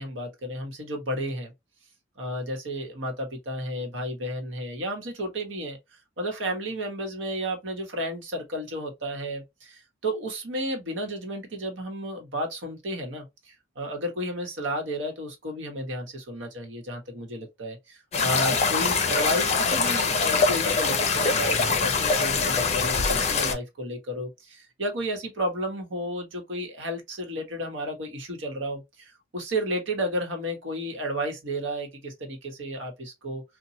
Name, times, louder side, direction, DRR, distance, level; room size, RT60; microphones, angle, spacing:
voice 1, 0.0-1.5 2.2-5.8 6.2-33.4, equal, 80° right, 1.1 m, -32 dB
sound 1, 18.1-23.5, left 4 dB, 35° left, 0.5 m, -23 dB
3.0 x 2.2 x 2.7 m
head